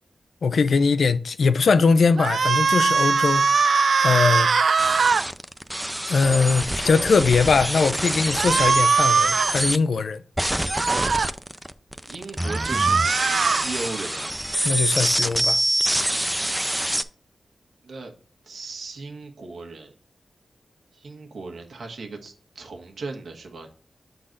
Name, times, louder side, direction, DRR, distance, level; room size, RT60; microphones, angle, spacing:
voice 1, 0.4-3.7 4.0-4.5 4.8-5.1 6.1-10.2 14.6-15.6, left 4 dB, 80° left, 0.4 m, -21 dB
sound 1, 2.2-5.2 8.4-9.6 10.7-11.3 12.4-13.7, right 5 dB, 70° right, 0.3 m, -21 dB
sound 2, 4.8-9.8 10.4-17.0, right 1 dB, 5° right, 0.4 m, -26 dB
voice 2, 12.0-14.3 17.8-18.1 18.4-19.9 20.9-23.7, right 3 dB, 85° right, 1.3 m, -36 dB
7.5 x 3.9 x 3.9 m
wide cardioid pair, 90°, 0 cm